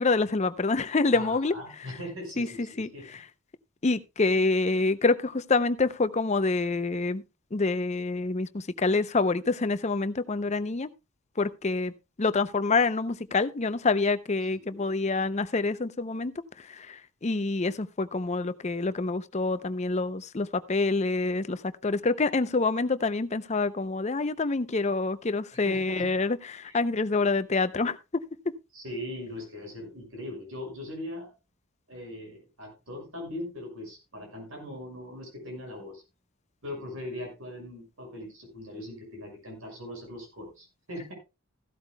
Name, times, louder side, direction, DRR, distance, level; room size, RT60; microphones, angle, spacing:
voice 1, 0.0-1.5 2.4-2.5 2.8-3.2 3.8-7.2 7.5-10.9 11.4-11.9 12.2-28.0, left 3 dB, 30° left, 0.5 m, -27 dB
voice 2, 1.1-3.2 14.5-14.9 25.6-26.1 26.7-26.8 28.7-31.3 31.9-36.0 36.6-41.1, left 1 dB, 75° right, 6.0 m, -40 dB
15.0 x 12.0 x 2.2 m
head